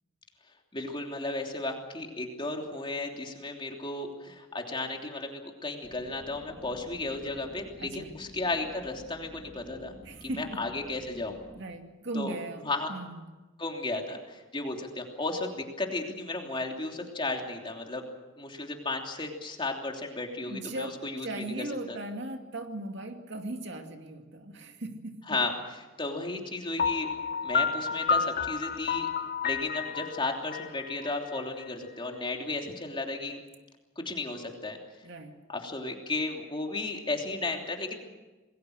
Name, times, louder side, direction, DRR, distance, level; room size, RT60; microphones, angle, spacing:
voice 1, 0.7-9.9 10.2-11.3 12.1-12.4 12.6-12.9 13.6-18.0 18.4-21.4 21.9-22.0 25.3-25.5 26.0-27.1 27.4-29.1 29.4-33.4 34.0-34.8 35.5-38.0, left 2 dB, 25° left, 2 dB, 3.1 m, -34 dB
sound 1, 5.8-11.6, equal, 10° right, 2.6 m, -51 dB
voice 2, 7.8-8.2 10.0-10.7 11.6-13.2 18.6-18.7 20.5-25.4 35.0-35.4, right 2 dB, 60° right, 5 dB, 2.4 m, -38 dB
Piano, 26.8-31.6, left 5 dB, 45° left, 0.7 m, -30 dB
27.5 x 21.0 x 6.5 m, 1.2 s
head